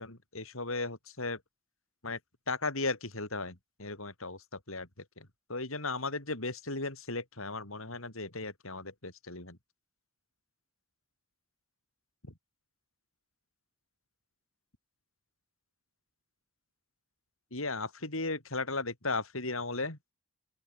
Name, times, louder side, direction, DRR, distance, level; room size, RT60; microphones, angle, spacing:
voice 1, 0.0-1.4 2.0-2.2 2.5-9.6 12.2-12.3 17.5-20.0, left 3 dB, 75° left, 5.3 m, -36 dB
open air
head